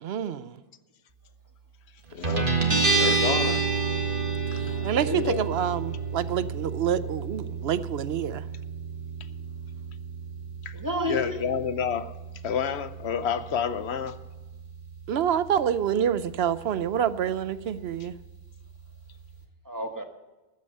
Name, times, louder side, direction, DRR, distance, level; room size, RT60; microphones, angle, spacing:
voice 1, 0.0-0.6 4.6-8.4 15.1-18.1, right 9 dB, 75° right, 15 dB, 0.9 m, -27 dB
voice 2, 2.1-2.5 2.9-3.6 4.5-4.6 5.2-5.5 10.6-10.8 11.1-12.1 12.4-14.2, left 7 dB, 85° left, 12 dB, 1.1 m, -29 dB
Guitar, 2.2-19.4, right 4 dB, 55° right, 2.0 m, -31 dB
voice 3, 4.9-5.6 10.7-11.4 19.6-20.0, left 1 dB, 20° right, 5 dB, 1.3 m, -30 dB
14.0 x 9.7 x 5.4 m, 1.1 s
omnidirectional pair, 1.1 m